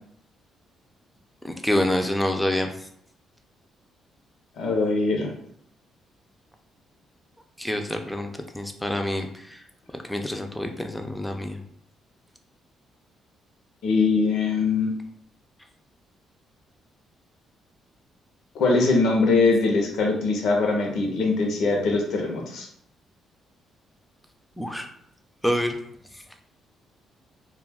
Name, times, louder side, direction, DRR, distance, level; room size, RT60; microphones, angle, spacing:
voice 1, 1.4-2.7 7.6-8.3 8.5-9.6 10.1-11.6 24.6-24.9 25.4-25.8, left 1 dB, 5° left, 5 dB, 0.4 m, -26 dB
voice 2, 4.6-5.3 13.8-14.9 18.5-22.7, left 3 dB, 75° left, 1 dB, 0.6 m, -22 dB
2.3 x 2.2 x 3.4 m, 0.68 s
cardioid pair, 90°, 0 cm